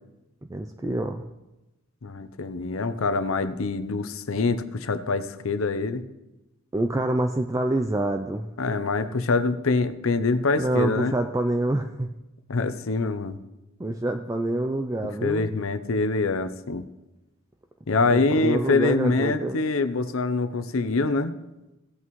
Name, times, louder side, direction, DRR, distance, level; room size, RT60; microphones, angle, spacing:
voice 1, 0.5-1.2 6.7-8.5 10.6-12.1 13.8-15.5 18.1-19.6, right 1 dB, 15° right, 5 dB, 0.4 m, -26 dB
voice 2, 2.0-6.0 8.6-11.2 12.5-13.4 15.2-16.8 17.9-21.3, left 3 dB, 70° left, 12 dB, 0.7 m, -25 dB
17.0 x 8.5 x 3.1 m, 1.0 s
head